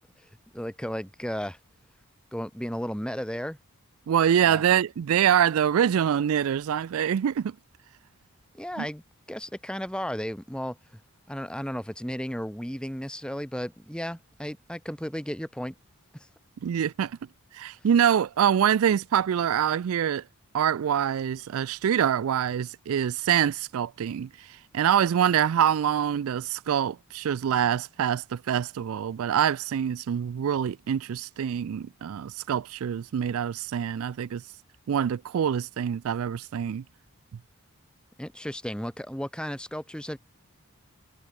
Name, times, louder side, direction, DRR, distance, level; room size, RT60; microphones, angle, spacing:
voice 1, 0.5-1.6 2.3-3.6 4.4-4.6 8.5-9.0 9.3-10.8 11.3-15.7 38.2-40.2, equal, 5° left, 2.1 m, -34 dB
voice 2, 4.1-7.5 8.8-8.9 16.6-17.2 17.5-20.2 20.5-24.5 24.7-34.4 34.9-36.8, right 9 dB, 70° right, 0.3 m, -25 dB
head